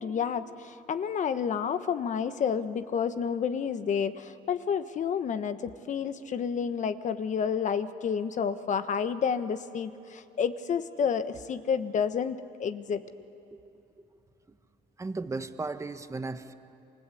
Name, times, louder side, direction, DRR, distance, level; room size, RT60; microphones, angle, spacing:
voice 1, 0.0-13.0, left 7 dB, 45° left, 11 dB, 1.3 m, -30 dB
voice 2, 15.0-16.6, right 3 dB, 15° right, 9 dB, 1.3 m, -35 dB
28.0 x 24.5 x 8.6 m, 2.7 s
cardioid pair, 110°, 17 cm